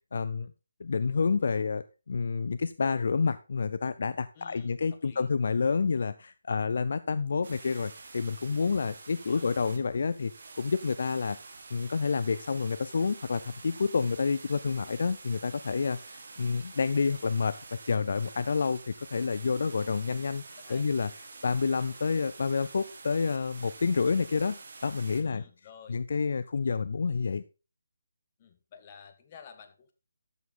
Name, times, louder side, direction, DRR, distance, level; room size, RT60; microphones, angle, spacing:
voice 1, 0.1-0.5 0.8-11.4 11.7-21.1 21.4-24.6 24.8-25.4 25.9-27.4, left 5 dB, 55° left, 14 dB, 0.5 m, -29 dB
voice 2, 4.3-5.3 9.2-9.5 20.6-20.8 25.2-26.0 28.4-29.9, left 7 dB, 30° left, 6 dB, 1.5 m, -52 dB
sound 1, 7.4-25.2, right 4 dB, 55° right, 2.1 m, -48 dB
12.0 x 7.2 x 3.8 m, 0.32 s
figure-of-eight pair, 160°, 0 cm